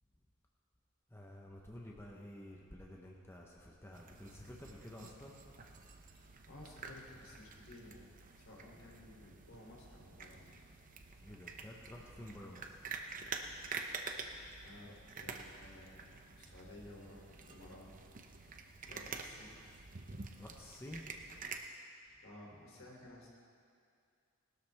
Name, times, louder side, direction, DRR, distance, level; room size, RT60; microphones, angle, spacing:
voice 1, 1.1-5.4 11.2-12.8 20.4-21.0 22.8-22.9, left 1 dB, 10° left, -2 dB, 1.0 m, -51 dB
sound 1, 3.9-21.6, right 4 dB, 40° right, 0.8 m, -48 dB
voice 2, 6.5-8.1 8.4-10.6 14.6-17.9 18.8-19.6 22.2-23.3, left 1 dB, 70° left, -2 dB, 3.2 m, -55 dB
20.0 x 13.0 x 3.5 m, 2.4 s
head